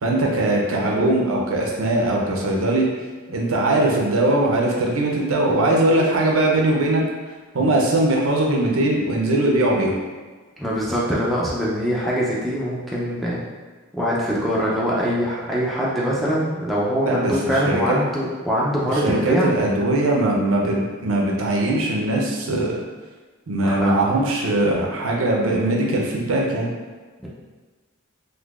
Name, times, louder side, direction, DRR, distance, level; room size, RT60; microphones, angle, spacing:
voice 1, 0.0-2.8 3.3-7.0 7.5-9.9 17.0-17.3 17.6-17.8 18.9-22.8 23.5-26.7, right 1 dB, 70° right, -1 dB, 0.6 m, -20 dB
voice 2, 10.6-13.4 13.9-19.5 23.6-24.0, equal, ahead, -7 dB, 0.5 m, -23 dB
3.8 x 2.6 x 2.4 m, 1.4 s
head